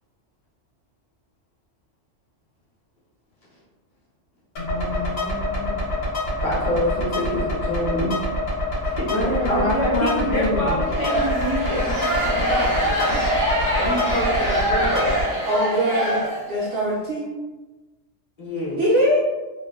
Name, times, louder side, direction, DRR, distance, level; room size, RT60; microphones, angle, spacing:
voice 1, 4.6-5.8 9.1-10.8 13.1-13.2, left 1 dB, 75° left, -7 dB, 0.9 m, -26 dB
sound 1, 4.6-15.2, left 1 dB, 55° left, 1.0 m, -26 dB
voice 2, 6.4-8.2 8.8-13.0 13.8-15.2 18.4-18.8, equal, 35° left, -7 dB, 0.6 m, -27 dB
sound 2, 10.8-16.8, right 1 dB, 25° right, 0.5 m, -24 dB
voice 3, 15.4-16.2 16.5-17.3 18.8-19.2, equal, 65° right, -6 dB, 0.7 m, -21 dB
2.5 x 2.1 x 2.3 m, 1.2 s
omnidirectional pair, 1.3 m